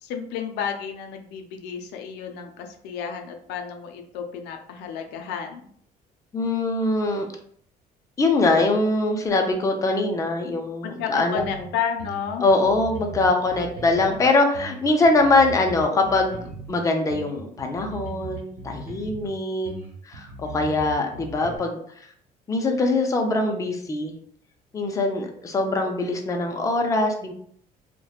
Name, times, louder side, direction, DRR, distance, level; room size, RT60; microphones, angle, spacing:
voice 1, 0.0-5.7 10.8-12.4, left 7 dB, 85° left, 5 dB, 0.4 m, -31 dB
voice 2, 6.3-7.3 8.2-11.7 12.4-19.7 20.1-21.8 22.5-24.1 24.7-27.3, left 2 dB, 20° left, 3 dB, 0.4 m, -22 dB
sound 1, 11.4-11.6 12.0-14.2 14.5-16.8 17.1-19.3 19.6-21.6, right 4 dB, 65° right, 1.2 m, -39 dB
2.8 x 2.1 x 2.3 m, 0.62 s
cardioid pair, 110°, 17 cm